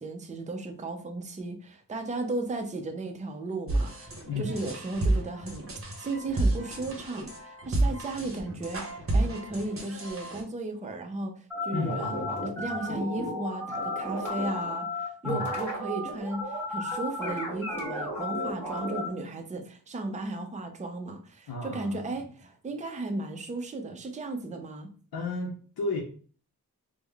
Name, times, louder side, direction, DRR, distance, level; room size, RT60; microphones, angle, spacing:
voice 1, 0.0-5.7 6.0-24.9, right 2 dB, 20° right, 5 dB, 0.4 m, -35 dB
sound 1, 3.7-10.4, right 2 dB, 35° right, 0.8 m, -30 dB
sound 2, 11.5-19.1, left 1 dB, 5° left, 1.5 m, -33 dB
voice 2, 11.7-12.5 15.2-15.5 21.5-22.0 25.1-26.0, left 3 dB, 65° left, -1 dB, 0.7 m, -33 dB
3.6 x 2.0 x 3.3 m, 0.43 s
wide cardioid pair, 140°, 38 cm